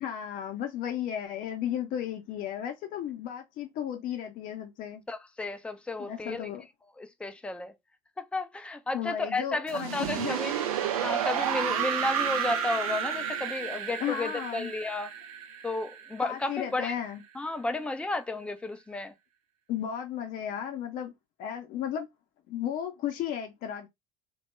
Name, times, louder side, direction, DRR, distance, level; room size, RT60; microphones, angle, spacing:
voice 1, 0.0-5.0 6.0-6.6 8.9-10.4 14.0-14.7 16.2-17.2 19.7-21.1 21.4-22.1 22.5-23.9, left 10 dB, 50° left, 0.6 m, -34 dB
voice 2, 5.1-6.5 7.0-7.7 8.2-10.5 11.0-15.1 15.6-16.9 17.3-19.1, left 2 dB, 5° left, 0.4 m, -33 dB
sound 1, 9.7-16.6, right 8 dB, 80° right, 0.5 m, -31 dB
2.2 x 2.1 x 3.0 m
hypercardioid pair, 70°, 18 cm